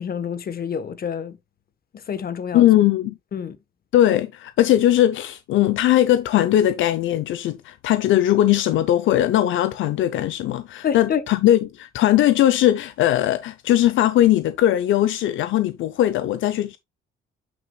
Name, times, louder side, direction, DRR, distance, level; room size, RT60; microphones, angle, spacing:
voice 1, 0.0-1.4 2.1-2.7 3.3-3.6 10.8-11.2, left 8 dB, 50° left, 1.1 m, -27 dB
voice 2, 2.5-3.1 3.9-16.8, left 13 dB, 80° left, 0.6 m, -19 dB
8.6 x 6.1 x 2.3 m
cardioid pair, 90°, 20 cm